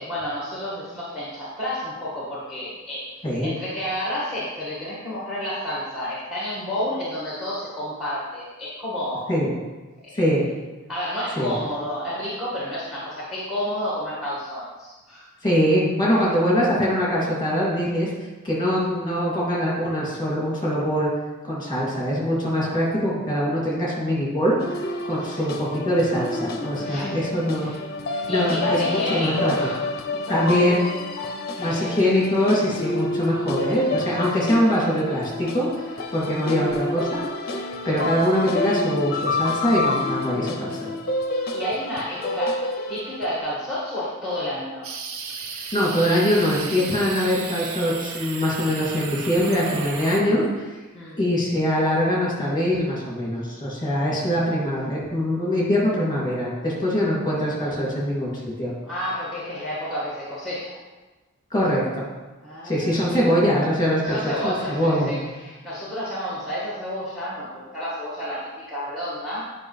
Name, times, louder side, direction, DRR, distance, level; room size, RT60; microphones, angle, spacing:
voice 1, 0.0-3.1 3.4-9.5 10.0-10.2 10.9-15.3 25.2-25.5 26.8-27.2 27.5-27.8 28.2-29.8 30.1-30.4 30.7-30.8 31.2-31.9 37.9-38.1 41.5-44.9 50.9-51.2 58.8-60.7 62.4-63.3 64.0-69.4, equal, ahead, -7 dB, 1.7 m, -30 dB
voice 2, 10.1-10.5 11.4-11.5 15.4-18.1 18.4-21.1 21.5-27.7 28.1-29.5 30.3-30.8 31.6-40.9 45.7-50.8 51.2-58.7 61.5-61.8 62.6-64.2 64.4-65.2, equal, 20° left, -6 dB, 2.6 m, -23 dB
sound 1, 24.6-43.3, left 2 dB, 45° left, 0.6 m, -29 dB
sound 2, 44.8-50.2, right 5 dB, 75° right, 0.8 m, -34 dB
9.7 x 5.3 x 3.3 m, 1.2 s
head